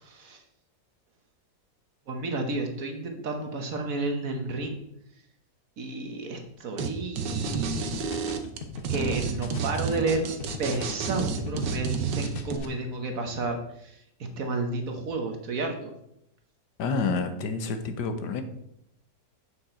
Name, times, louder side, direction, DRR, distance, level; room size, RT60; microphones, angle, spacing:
voice 1, 0.0-0.4 2.1-4.8 5.8-7.9 8.9-10.2 10.6-14.0 14.4-15.9, right 2 dB, 55° right, 4 dB, 1.3 m, -31 dB
sound 1, 6.8-6.9 7.2-12.6, right 6 dB, 80° right, 1.5 m, -30 dB
sound 2, 7.5-11.9 12.2-12.6, left 4 dB, 45° left, 0.8 m, -38 dB
voice 2, 16.8-18.4, left 4 dB, 75° left, 8 dB, 1.4 m, -28 dB
8.5 x 5.9 x 4.3 m, 0.78 s
omnidirectional pair, 1.9 m